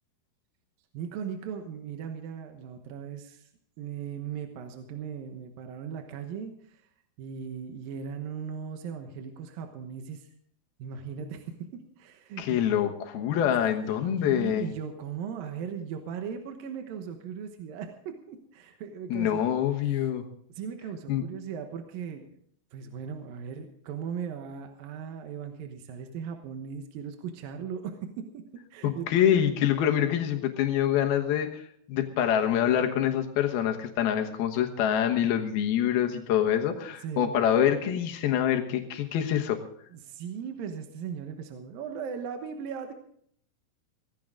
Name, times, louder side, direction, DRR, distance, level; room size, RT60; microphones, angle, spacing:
voice 1, 0.9-3.5 3.8-6.8 7.2-10.3 10.8-12.6 13.4-13.5 14.0-19.4 19.9-20.1 20.5-22.2 22.7-28.4 28.7-29.1 37.0-37.4 39.9-42.9, right 7 dB, 75° right, 5 dB, 2.9 m, -38 dB
voice 2, 12.4-14.7 19.1-20.2 21.1-21.2 28.8-31.6 31.9-39.6, left 10 dB, 90° left, 5 dB, 3.2 m, -25 dB
17.0 x 15.5 x 3.8 m, 0.64 s
omnidirectional pair, 4.3 m